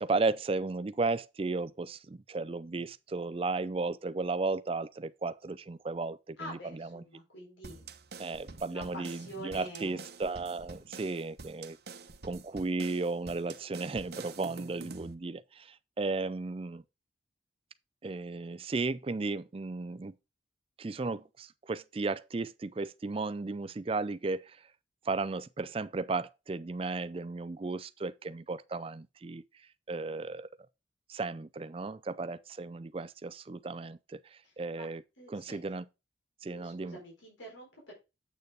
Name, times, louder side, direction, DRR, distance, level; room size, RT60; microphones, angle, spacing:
voice 1, 0.0-7.0 8.2-11.8 12.2-16.8 18.0-20.1 20.8-24.6 25.1-29.4 29.9-30.5 31.1-34.2 34.6-35.0 35.3-35.8 36.4-37.0, right 3 dB, 30° right, 0.4 m, -34 dB
voice 2, 6.4-7.9 8.7-10.0 34.4-34.9 35.2-35.6 36.5-37.9, equal, 80° left, 4.3 m, -47 dB
sound 1, 7.6-15.1, right 4 dB, 55° right, 0.9 m, -47 dB
8.2 x 6.7 x 3.5 m
head